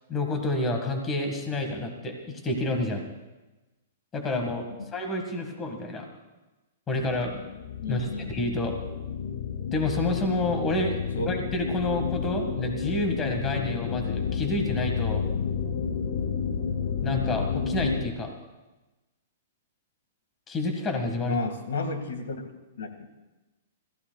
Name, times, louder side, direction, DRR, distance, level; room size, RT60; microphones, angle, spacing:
voice 1, 0.1-3.0 4.1-6.1 6.9-7.3 7.9-8.7 9.7-11.0 11.2-15.2 17.0-18.3 20.5-21.4, left 2 dB, 15° left, 4 dB, 1.7 m, -29 dB
sound 1, 7.0-18.1, left 6 dB, 55° left, 0.9 m, -31 dB
voice 2, 7.8-8.3 11.2-11.3 21.2-22.4 22.8-22.9, left 3 dB, 85° left, 6 dB, 1.9 m, -31 dB
26.5 x 15.0 x 2.3 m, 1.1 s
hypercardioid pair, 155°, 0 cm